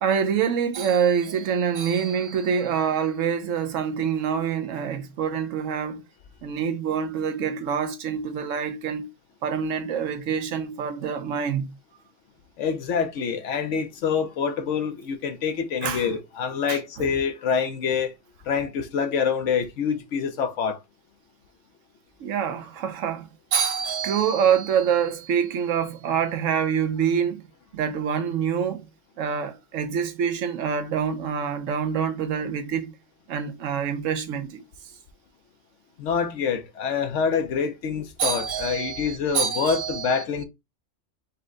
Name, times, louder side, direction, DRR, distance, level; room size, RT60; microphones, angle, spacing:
voice 1, 0.0-6.0 6.4-9.1 9.4-11.7 15.8-16.1 16.7-16.8 22.2-27.5 27.7-28.8 29.2-32.9 33.3-34.6 38.2-40.2, right 7 dB, 85° right, 1.1 m, -26 dB
voice 2, 12.6-18.1 18.5-20.8 36.0-40.4, left 6 dB, 75° left, 1.0 m, -26 dB
5.4 x 2.1 x 3.8 m
omnidirectional pair, 1.3 m